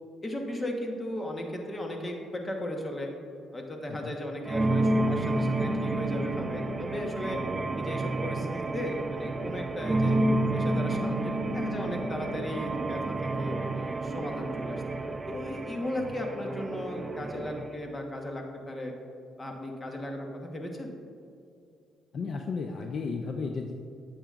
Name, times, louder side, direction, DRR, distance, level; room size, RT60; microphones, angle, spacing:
voice 1, 0.2-3.1 3.5-7.4 7.7-10.2 10.5-18.9 19.4-20.9, left 1 dB, 25° left, 2 dB, 1.2 m, -36 dB
sound 1, 4.5-17.7, right 2 dB, 25° right, 0.5 m, -30 dB
voice 2, 10.0-10.3 16.0-16.1 22.1-23.7, left 4 dB, 55° left, 3 dB, 0.5 m, -35 dB
8.8 x 8.2 x 2.5 m, 2.5 s
cardioid pair, 90°, 0 cm